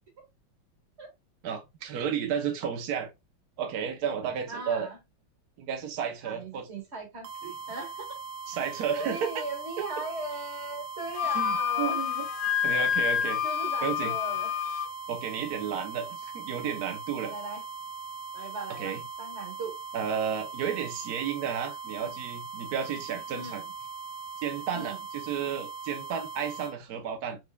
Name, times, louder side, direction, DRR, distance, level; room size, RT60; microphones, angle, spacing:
voice 1, 1.4-3.1 3.6-4.9 5.6-6.7 7.4-7.5 8.5-9.3 11.2-12.2 12.6-13.4 13.8-14.1 15.1-17.3 18.7-19.0 19.9-23.6 24.4-27.4, right 7 dB, 65° right, 1.1 m, -32 dB
voice 2, 4.5-5.0 6.2-7.3 7.7-8.2 9.0-12.0 12.7-12.9 13.4-14.5 17.2-17.6 18.3-19.8 22.0-22.1 23.3-23.7 24.7-25.0, right 3 dB, 35° right, 2.0 m, -38 dB
sound 1, 7.2-26.7, right 5 dB, 80° right, 1.7 m, -40 dB
Wind instrument woodwind instrument, 11.1-14.9, left 10 dB, 65° left, 1.2 m, -28 dB
5.2 x 4.4 x 2.2 m
omnidirectional pair, 2.1 m